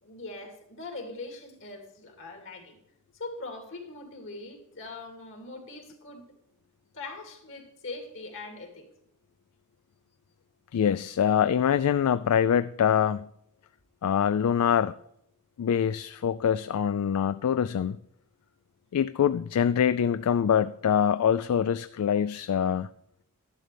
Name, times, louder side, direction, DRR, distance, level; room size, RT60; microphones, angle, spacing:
voice 1, 0.0-2.8 3.1-6.3 6.9-8.9, left 3 dB, 60° left, 4 dB, 2.7 m, -41 dB
voice 2, 10.7-13.3 14.0-14.9 15.6-18.0 18.9-22.9, left 8 dB, 75° left, 14 dB, 0.3 m, -24 dB
12.0 x 11.5 x 3.4 m, 0.81 s
head